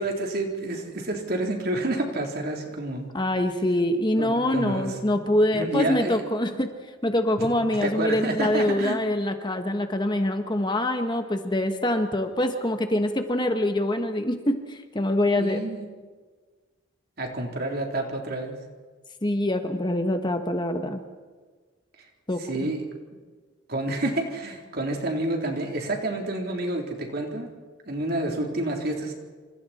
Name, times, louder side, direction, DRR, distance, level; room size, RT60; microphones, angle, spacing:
voice 1, 0.0-3.1 4.2-5.2 5.5-6.3 7.4-7.5 7.8-9.0 15.4-15.8 17.2-18.6 22.0-22.1 22.4-22.8 23.7-27.5 27.9-29.1, right 2 dB, 50° right, 1 dB, 3.6 m, -29 dB
voice 2, 3.1-6.7 7.0-15.6 19.2-21.0 22.3-22.7, left 1 dB, 25° left, 6 dB, 1.4 m, -25 dB
28.0 x 26.0 x 4.4 m, 1.4 s
head